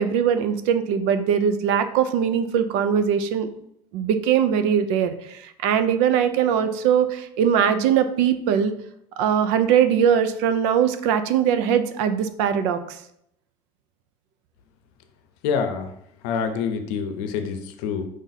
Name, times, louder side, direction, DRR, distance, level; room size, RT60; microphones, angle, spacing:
voice 1, 0.0-3.5 3.9-8.7 9.2-13.0, right 8 dB, 85° right, 10 dB, 0.5 m, -21 dB
voice 2, 15.4-15.9 16.2-18.1, left 6 dB, 85° left, 8 dB, 0.6 m, -26 dB
4.8 x 2.7 x 4.0 m, 0.74 s
cardioid pair, 175°, 15 cm